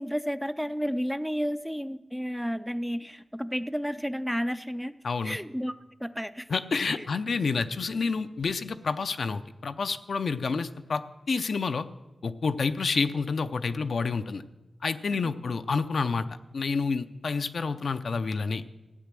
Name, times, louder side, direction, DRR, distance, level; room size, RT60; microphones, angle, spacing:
voice 1, 0.0-5.0 5.2-6.5 7.0-7.1, equal, ahead, 12 dB, 0.4 m, -32 dB
voice 2, 5.0-5.4 6.5-11.0 11.3-11.9 12.2-14.4 14.8-16.3 16.5-18.6, left 4 dB, 65° left, 10 dB, 0.6 m, -29 dB
15.0 x 9.8 x 7.6 m, 1.1 s
wide cardioid pair, 120°, 0 cm